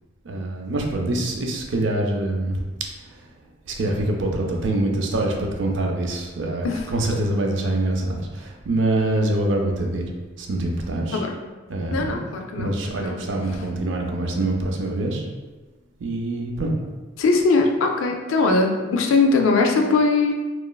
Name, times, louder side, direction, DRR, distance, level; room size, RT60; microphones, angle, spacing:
voice 1, 0.2-2.6 3.7-10.1 10.4-11.2 11.7-12.2 12.5-15.2 16.0-16.7, right 1 dB, 70° right, 2 dB, 0.4 m, -25 dB
voice 2, 11.9-13.2 17.2-20.3, left 3 dB, 85° left, 3 dB, 0.4 m, -20 dB
3.0 x 2.3 x 2.2 m, 1.2 s
head